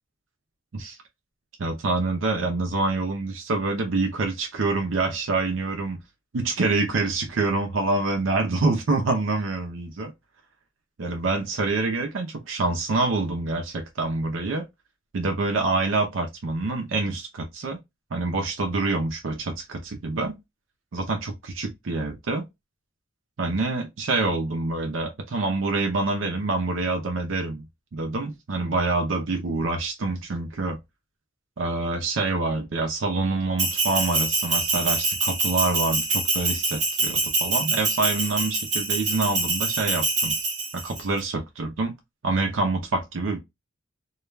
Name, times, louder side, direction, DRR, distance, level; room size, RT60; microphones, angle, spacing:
voice 1, 1.6-6.0 6.3-10.1 11.0-14.7 15.1-17.8 18.1-20.4 20.9-22.4 23.4-27.6 27.9-30.8 31.6-40.4 40.7-42.0 42.2-43.4, right 3 dB, 75° right, 0.5 m, -26 dB
Bell, 33.6-41.0, right 3 dB, 35° right, 0.9 m, -25 dB
2.3 x 2.2 x 3.1 m
head